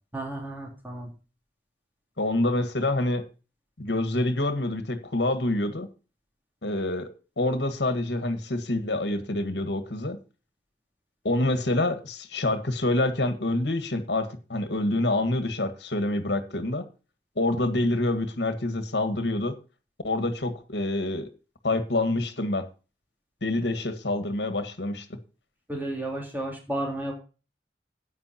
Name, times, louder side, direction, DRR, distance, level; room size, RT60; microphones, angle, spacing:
voice 1, 0.1-1.1 25.7-27.1, right 1 dB, 10° right, 0 dB, 3.4 m, -32 dB
voice 2, 2.2-3.2 3.8-5.9 6.6-10.2 11.2-16.8 17.3-19.6 20.0-21.3 21.6-22.7 23.4-25.2, left 2 dB, 75° left, 9 dB, 1.7 m, -27 dB
13.5 x 9.4 x 2.9 m, 0.34 s
head